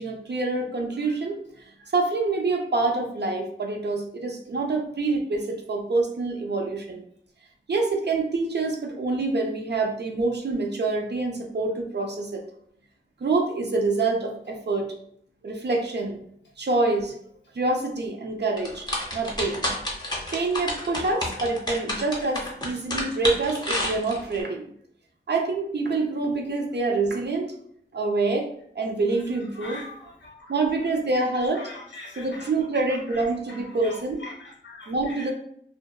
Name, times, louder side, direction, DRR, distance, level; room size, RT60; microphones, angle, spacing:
voice 1, 0.0-1.4 1.8-7.0 7.7-12.4 13.2-14.9 15.4-16.2 16.6-17.1 17.5-19.7 20.3-24.7 25.3-27.5 27.9-28.5 28.7-29.8 30.5-31.7 32.2-34.2 34.9-35.3, right 3 dB, 60° right, 2 dB, 0.5 m, -26 dB
sound 1, 18.6-24.4, left 1 dB, 20° left, 0.6 m, -29 dB
voice 2, 29.1-30.4 30.8-32.5 32.9-35.3, left 2 dB, 65° left, -2 dB, 0.6 m, -43 dB
2.5 x 2.2 x 2.2 m, 0.67 s
wide cardioid pair, 70°, 20 cm